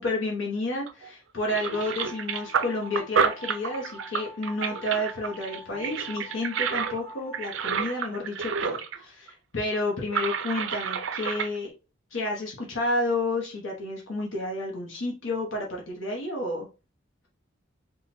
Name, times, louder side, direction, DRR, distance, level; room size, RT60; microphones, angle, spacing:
voice 1, 0.0-11.7 12.1-16.7, left 1 dB, 70° left, -1 dB, 1.0 m, -30 dB
sound 1, 0.9-1.1 1.4-9.0 9.3-9.4 10.0-11.5, right 6 dB, 65° right, 0.5 m, -30 dB
sound 2, 1.7-7.5, left 2 dB, 5° left, 0.5 m, -46 dB
3.7 x 2.3 x 4.2 m, 0.31 s
head